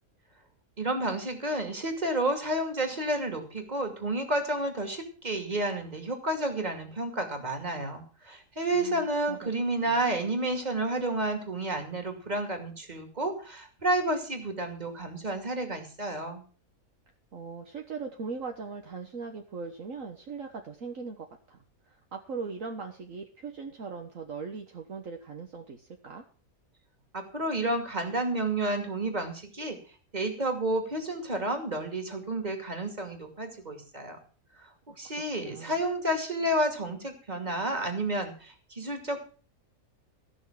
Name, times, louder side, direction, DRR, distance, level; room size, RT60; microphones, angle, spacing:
voice 1, 0.8-16.4 27.1-29.8 30.1-34.2 35.0-39.2, right 1 dB, 30° right, 5 dB, 2.6 m, -30 dB
voice 2, 8.7-9.5 9.8-10.0 17.3-21.6 21.8-26.2 35.0-35.1 35.4-35.8, right 5 dB, 60° right, 3 dB, 1.7 m, -40 dB
15.5 x 6.4 x 7.3 m, 0.40 s
omnidirectional pair, 1.6 m